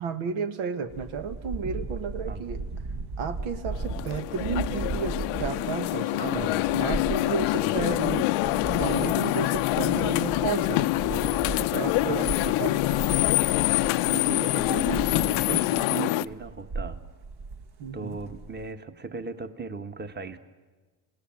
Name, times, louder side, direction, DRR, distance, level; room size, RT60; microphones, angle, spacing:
voice 1, 0.0-2.6 3.2-8.0 8.8-11.3 11.6-12.3 12.6-12.8 17.8-18.2, right 6 dB, 80° right, 9 dB, 1.4 m, -32 dB
sound 1, 0.9-15.9 16.3-18.7, right 3 dB, 50° right, 1.6 m, -37 dB
sound 2, 3.7-16.2, left 18 dB, 85° left, 0.7 m, -25 dB
voice 2, 6.2-6.8 7.4-8.9 12.1-12.6 14.1-17.0 17.9-20.4, right 5 dB, 20° right, 10 dB, 1.4 m, -37 dB
27.5 x 17.5 x 7.7 m, 1.3 s
supercardioid pair, 75°, 49 cm